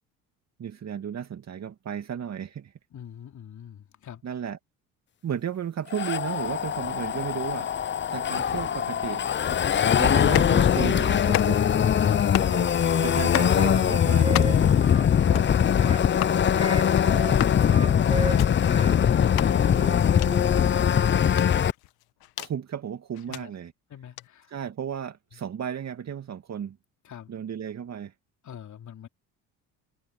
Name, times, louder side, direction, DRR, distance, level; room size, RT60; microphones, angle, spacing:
voice 1, 0.6-2.7 4.2-4.6 5.2-9.3 10.0-11.6 13.0-14.8 22.4-23.7 24.5-26.8 27.3-28.1, right 8 dB, 40° right, 2.4 m, -34 dB
voice 2, 2.9-4.2 14.5-21.2 23.3-23.5 23.9-24.5 27.0-27.3 28.4-29.1, left 9 dB, 45° left, 3.3 m, -42 dB
sound 1, 5.9-21.7, left 8 dB, 30° left, 0.8 m, -22 dB
sound 2, 10.2-10.6 11.2-11.8 12.2-12.6 13.2-13.6 14.2-14.7 15.2-15.5 16.2-16.4 17.2-17.6 18.2-18.5 19.2-19.5 20.2-20.3 21.2-22.5 23.1-23.4 24.2-24.3, left 18 dB, 65° left, 2.1 m, -32 dB
Wind instrument woodwind instrument, 12.4-16.1 16.5-19.0 19.2-20.5, right 2 dB, 15° right, 6.0 m, -36 dB
hypercardioid pair, 65°, 40 cm